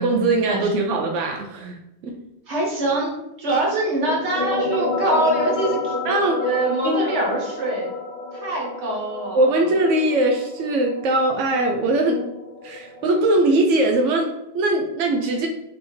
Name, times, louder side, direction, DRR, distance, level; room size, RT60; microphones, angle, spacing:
voice 1, 0.0-2.1 6.0-6.4 6.8-7.1 9.3-12.2 12.6-15.5, right 2 dB, 85° right, 1 dB, 0.9 m, -21 dB
voice 2, 2.5-5.9 6.4-7.9 8.3-9.5, right 2 dB, 70° right, -2 dB, 1.5 m, -24 dB
sound 1, 4.1-13.5, left 3 dB, 60° left, 0.5 m, -30 dB
3.5 x 3.3 x 4.2 m, 0.90 s
omnidirectional pair, 1.2 m